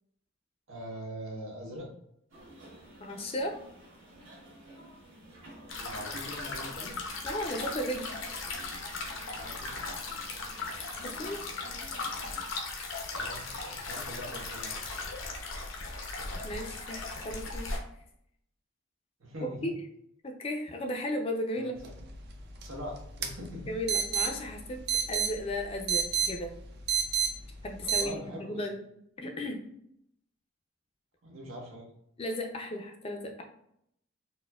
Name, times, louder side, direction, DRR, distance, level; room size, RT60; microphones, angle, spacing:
voice 1, 0.7-1.9 5.8-7.0 9.3-9.9 13.1-13.4 13.7-14.9 19.2-19.7 21.5-21.7 22.6-23.7 27.8-28.6 31.2-31.9, equal, 90° right, -2 dB, 1.0 m, -42 dB
sound 1, 2.3-12.4, right 1 dB, 70° right, 1.2 m, -52 dB
voice 2, 3.0-3.5 7.2-8.1 11.0-11.4 16.4-17.0 17.2-17.8 19.4-19.7 20.2-21.8 23.7-24.8 25.1-26.5 27.6-28.8 29.2-29.6 32.2-33.4, left 1 dB, 30° left, 3 dB, 0.4 m, -35 dB
sound 2, 5.7-17.8, left 3 dB, 75° left, 0.6 m, -38 dB
sound 3, 21.8-28.1, right 7 dB, 55° right, 0.4 m, -33 dB
4.1 x 2.1 x 2.2 m, 0.73 s
head